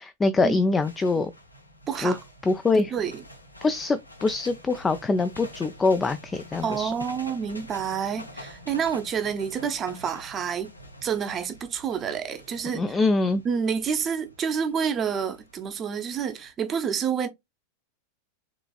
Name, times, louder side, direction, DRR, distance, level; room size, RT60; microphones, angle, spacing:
voice 1, 0.0-1.3 2.0-2.1 2.5-2.9 3.6-6.9 12.7-13.4, left 3 dB, 15° left, 0.3 m, -24 dB
sound 1, 0.6-16.5, left 1 dB, 85° left, 0.7 m, -47 dB
voice 2, 1.9-2.2 2.9-3.2 6.6-10.7 11.0-13.0 13.4-17.3, right 7 dB, 25° right, 0.6 m, -28 dB
3.7 x 3.3 x 2.3 m
figure-of-eight pair, 90°, 0 cm